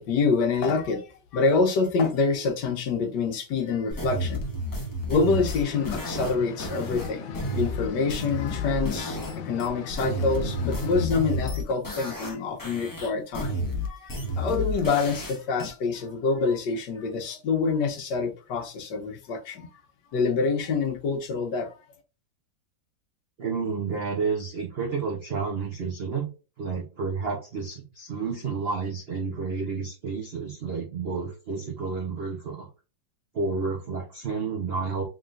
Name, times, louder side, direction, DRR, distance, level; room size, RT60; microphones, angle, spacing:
voice 1, 0.0-4.4 5.1-9.2 9.4-13.5 13.8-19.7 20.1-21.7, left 4 dB, 70° left, 1.5 m, -26 dB
sound 1, 3.9-9.3 9.6-12.3 12.6-15.7, equal, 20° left, 0.6 m, -31 dB
sound 2, 5.3-11.1, left 6 dB, 90° left, 1.4 m, -39 dB
voice 2, 23.4-26.3 26.6-32.7 33.3-35.0, right 5 dB, 45° right, 0.8 m, -30 dB
3.8 x 3.6 x 2.5 m
omnidirectional pair, 2.0 m